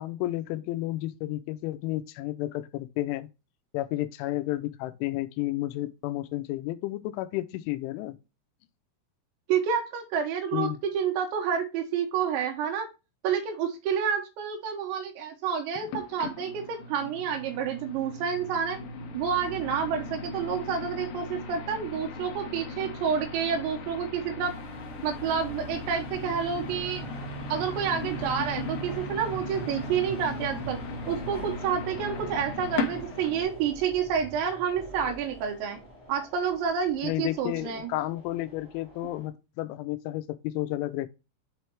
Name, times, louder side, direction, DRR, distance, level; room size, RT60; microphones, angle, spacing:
voice 1, 0.0-3.3 3.7-8.2 10.5-10.8 37.0-41.1, left 16 dB, 90° left, 3.0 m, -32 dB
voice 2, 9.5-12.9 13.2-18.8 19.1-24.5 25.0-27.0 27.5-30.8 31.1-35.8 36.1-37.9, right 7 dB, 75° right, 3.4 m, -29 dB
sound 1, 15.9-33.4, left 2 dB, 75° left, 2.4 m, -37 dB
sound 2, 24.4-39.3, right 1 dB, 10° right, 1.3 m, -46 dB
7.5 x 3.2 x 4.5 m
omnidirectional pair, 5.4 m